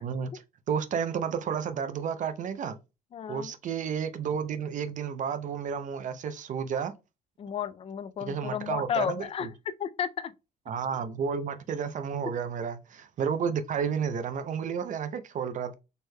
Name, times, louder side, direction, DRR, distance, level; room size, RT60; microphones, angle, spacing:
voice 1, 0.0-2.8 3.3-6.9 8.2-9.5 10.7-15.7, right 7 dB, 50° right, 0.6 m, -31 dB
voice 2, 3.1-3.5 7.4-10.3, left 8 dB, 35° left, 0.4 m, -33 dB
4.4 x 3.2 x 2.2 m
cardioid pair, 110°, 17 cm